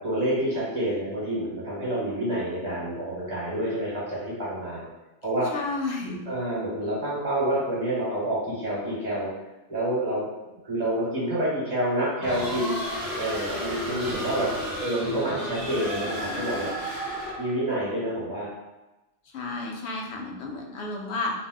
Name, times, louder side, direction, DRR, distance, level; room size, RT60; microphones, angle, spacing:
voice 1, 0.0-4.9 5.2-5.5 6.3-9.3 9.7-12.8 13.1-14.5 14.8-16.7 17.4-18.5, right 1 dB, 40° right, -8 dB, 0.9 m, -28 dB
voice 2, 5.5-6.3 19.3-21.3, left 3 dB, 70° left, 0 dB, 0.8 m, -32 dB
sound 1, 12.2-17.6, equal, 25° right, 0.6 m, -32 dB
2.5 x 2.1 x 3.3 m, 1.1 s
omnidirectional pair, 1.2 m